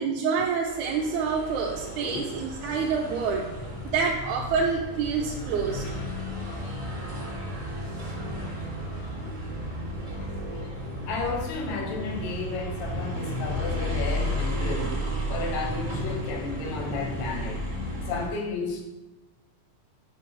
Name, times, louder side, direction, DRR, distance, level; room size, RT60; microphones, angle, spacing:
voice 1, 0.0-3.5 3.8-5.9, right 5 dB, 80° right, -1 dB, 1.9 m, -27 dB
sound 1, 0.6-18.3, equal, 30° right, 0.9 m, -33 dB
voice 2, 5.7-6.0 8.1-8.6 10.8-15.0 15.3-17.6 18.1-18.8, left 4 dB, 70° left, 2 dB, 2.0 m, -33 dB
4.8 x 4.6 x 5.8 m, 1.0 s
omnidirectional pair, 3.6 m